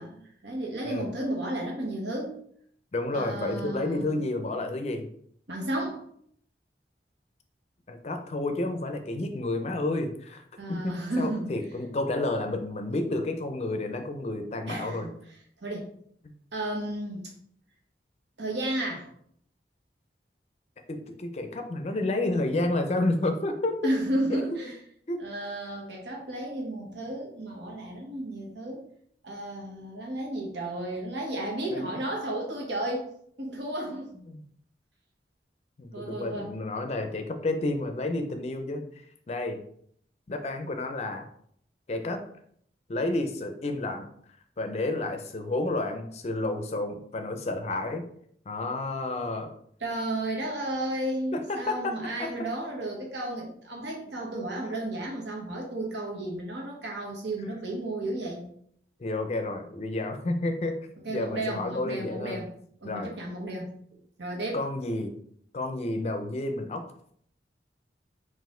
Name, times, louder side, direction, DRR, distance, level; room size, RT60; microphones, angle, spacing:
voice 1, 0.0-2.4 3.1-4.2 5.5-6.0 10.6-11.5 14.7-15.1 15.6-15.9 16.5-17.3 18.4-19.1 23.8-24.7 25.2-28.8 29.2-33.1 33.4-34.1 35.9-36.5 49.8-58.5 61.0-62.5 62.8-64.6, right 1 dB, 85° right, -1 dB, 1.2 m, -33 dB
voice 2, 2.9-5.1 7.9-10.4 10.7-15.1 20.9-23.9 24.3-24.4 25.1-25.2 31.7-31.8 34.3-34.4 35.8-38.8 39.3-39.6 40.3-41.3 41.9-42.2 42.9-44.0 44.6-48.1 48.5-49.5 51.5-52.3 57.4-57.5 59.0-60.8 61.1-62.4 62.8-63.1 64.5-65.1 65.5-66.8, left 2 dB, 35° left, 6 dB, 0.4 m, -30 dB
4.1 x 2.5 x 3.7 m, 0.66 s
head